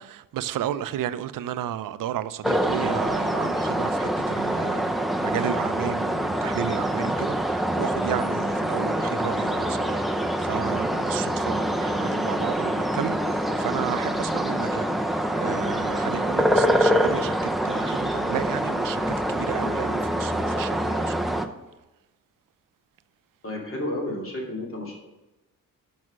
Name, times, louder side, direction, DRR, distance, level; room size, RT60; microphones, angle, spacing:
voice 1, 0.0-17.4 17.6-21.4, right 11 dB, 70° right, 0.5 m, -33 dB
sound 1, 2.4-21.5, equal, ahead, 0.5 m, -25 dB
voice 2, 23.4-24.9, left 1 dB, 40° left, 2.5 m, -31 dB
6.2 x 6.2 x 6.1 m
cardioid pair, 105°, 34 cm